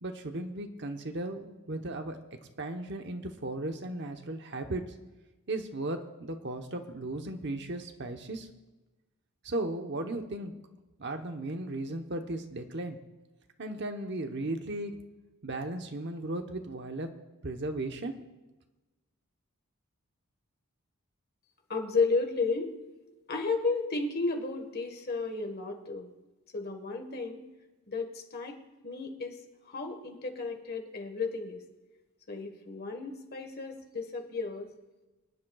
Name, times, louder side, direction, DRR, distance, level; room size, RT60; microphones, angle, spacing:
voice 1, 0.0-2.2 2.6-4.8 5.5-8.5 9.4-10.5 11.0-13.0 13.6-14.9 15.4-17.1 17.4-18.1, right 2 dB, 50° right, 5 dB, 1.0 m, -36 dB
voice 2, 21.7-22.7 23.3-26.1 26.5-27.5 27.9-28.6 28.8-29.4 29.7-31.6 32.3-34.7, left 4 dB, 45° left, 5 dB, 1.5 m, -33 dB
26.0 x 10.5 x 2.4 m, 1.1 s
head